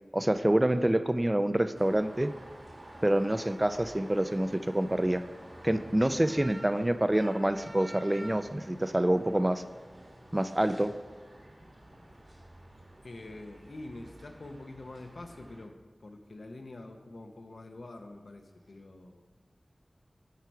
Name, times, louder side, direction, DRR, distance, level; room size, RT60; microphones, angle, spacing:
voice 1, 0.1-2.3 3.0-5.2 5.6-9.6 10.3-10.9, right 1 dB, 20° right, 10 dB, 0.3 m, -27 dB
sound 1, 1.7-15.7, right 1 dB, 55° right, 1.6 m, -50 dB
voice 2, 13.0-19.2, left 2 dB, 75° left, 5 dB, 0.7 m, -46 dB
8.2 x 4.7 x 4.5 m, 1.3 s
wide cardioid pair, 55°, 0 cm